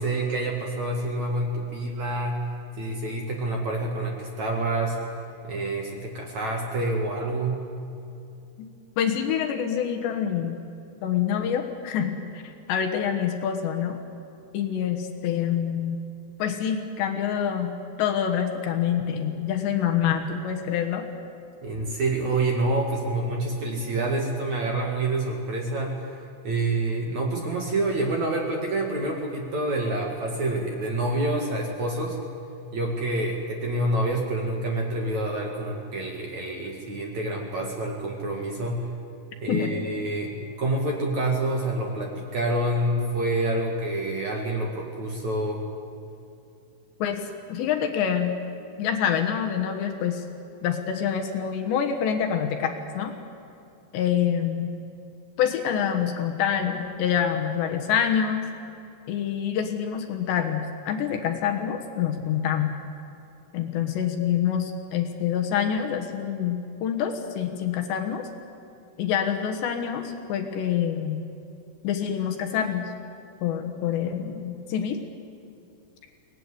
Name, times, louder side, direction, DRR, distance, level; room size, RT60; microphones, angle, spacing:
voice 1, 0.0-2.4 2.8-5.0 5.4-7.6 21.6-32.2 32.7-38.9 39.4-45.6, right 2 dB, 55° right, 1 dB, 2.2 m, -27 dB
voice 2, 9.0-10.6 11.0-14.0 14.5-16.0 16.4-21.1 39.5-39.7 47.0-48.4 48.8-50.2 50.6-53.1 53.9-54.7 55.4-58.5 59.1-62.7 63.5-68.3 69.0-71.2 71.8-72.9 73.4-75.0, left 8 dB, 70° left, 4 dB, 3.2 m, -26 dB
23.5 x 19.0 x 9.8 m, 2.7 s
omnidirectional pair, 5.8 m